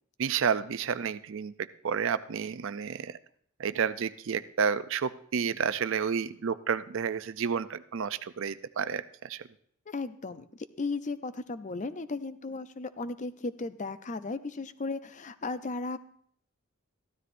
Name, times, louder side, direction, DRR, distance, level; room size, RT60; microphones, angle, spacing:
voice 1, 0.2-3.2 3.6-9.4, right 6 dB, 60° right, 14 dB, 0.4 m, -30 dB
voice 2, 9.9-16.0, left 3 dB, 35° left, 13 dB, 0.5 m, -35 dB
14.5 x 12.5 x 2.6 m, 0.63 s
head